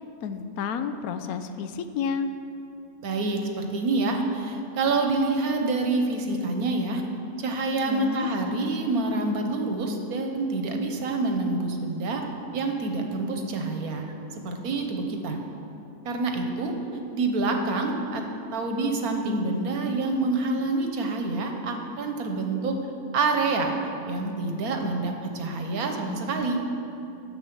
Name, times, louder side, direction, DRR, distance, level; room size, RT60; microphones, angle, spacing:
voice 1, 0.2-2.3 7.8-8.3, left 6 dB, 85° left, 9 dB, 1.1 m, -30 dB
voice 2, 3.0-7.0 7.4-14.1 14.4-15.4 16.0-16.8 17.1-18.2 18.5-22.9 23.1-23.7 24.1-26.6, right 3 dB, 85° right, 4 dB, 1.5 m, -27 dB
10.5 x 8.0 x 6.0 m, 2.9 s
omnidirectional pair, 1.5 m